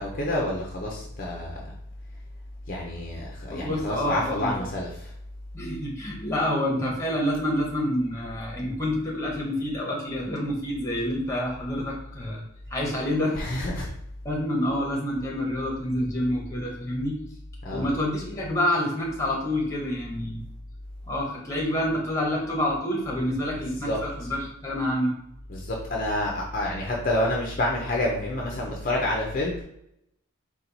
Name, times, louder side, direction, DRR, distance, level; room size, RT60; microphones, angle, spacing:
voice 1, 0.0-1.7 2.7-5.1 13.4-13.9 17.6-17.9 23.8-24.0 25.5-29.6, left 1 dB, 40° left, -2 dB, 0.6 m, -28 dB
voice 2, 3.5-4.7 5.5-12.4 12.7-13.7 14.2-17.2 17.7-20.4 21.1-25.1, left 1 dB, 15° left, -2 dB, 0.9 m, -28 dB
4.3 x 2.3 x 4.0 m, 0.77 s
head